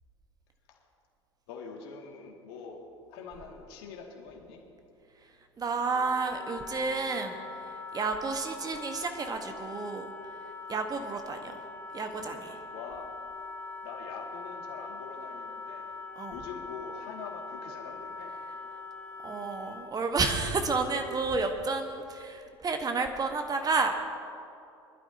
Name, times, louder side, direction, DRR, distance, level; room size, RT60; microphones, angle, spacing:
voice 1, 1.5-2.8 3.1-4.6 12.7-13.1 13.8-15.9 16.3-18.3, left 5 dB, 60° left, 0 dB, 2.1 m, -44 dB
voice 2, 5.6-10.1 10.7-11.6 11.9-12.6 16.2-16.3 19.2-23.9, right 4 dB, 25° right, 5 dB, 1.2 m, -31 dB
Wind instrument woodwind instrument, 5.9-20.0, left 4 dB, 15° left, 1.4 m, -42 dB
23.0 x 12.0 x 2.8 m, 2.6 s
figure-of-eight pair, 70°, 15 cm